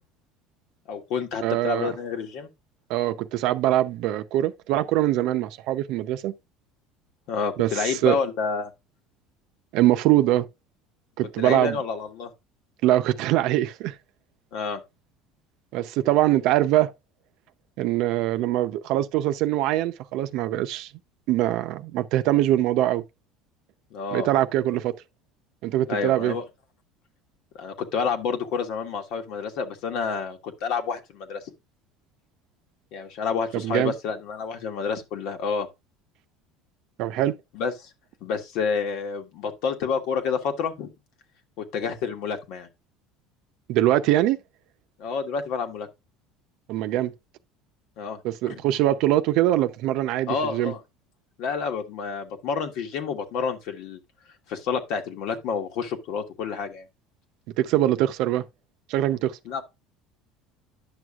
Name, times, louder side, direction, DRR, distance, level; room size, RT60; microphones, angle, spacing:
voice 1, 0.9-2.5 7.3-8.7 11.4-12.3 14.5-14.8 23.9-24.3 25.9-26.4 27.5-31.4 32.9-35.7 37.5-37.9 38.2-40.9 41.6-42.7 45.0-45.9 48.0-48.2 48.5-48.6 50.3-50.8 51.4-54.0 54.5-56.8 59.4-59.6, left 5 dB, 65° left, 1.5 m, -29 dB
voice 2, 1.4-1.9 2.9-6.3 7.6-8.2 9.7-10.5 11.2-11.8 12.8-14.0 15.7-16.9 17.8-20.9 21.3-23.0 24.1-25.0 25.6-26.4 33.5-33.9 37.0-37.4 43.7-44.4 46.7-47.1 48.2-50.7 57.6-58.4 58.9-59.4, right 14 dB, 65° right, 0.7 m, -23 dB
10.5 x 6.3 x 2.4 m
cardioid pair, 130°, 0 cm